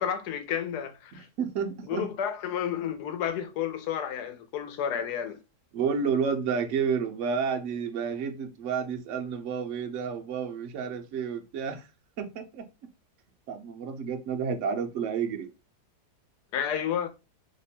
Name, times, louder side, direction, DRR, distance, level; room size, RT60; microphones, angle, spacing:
voice 1, 0.0-1.3 1.9-5.4 16.5-17.1, left 9 dB, 90° left, 1.2 m, -31 dB
voice 2, 1.1-2.1 5.7-11.9 12.2-12.7 13.5-15.5, right 6 dB, 65° right, 0.8 m, -30 dB
2.9 x 2.2 x 4.1 m
omnidirectional pair, 1.7 m